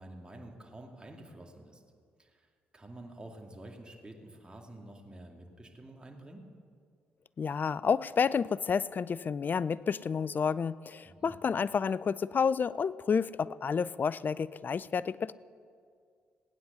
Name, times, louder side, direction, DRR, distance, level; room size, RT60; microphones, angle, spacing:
voice 1, 0.0-1.8 2.2-2.5 2.7-6.5 11.0-11.3, right 1 dB, 20° right, 1 dB, 2.4 m, -49 dB
voice 2, 7.4-15.3, left 6 dB, 45° left, 19 dB, 0.4 m, -30 dB
17.0 x 9.5 x 7.0 m, 2.2 s
supercardioid pair, 50°, 4 cm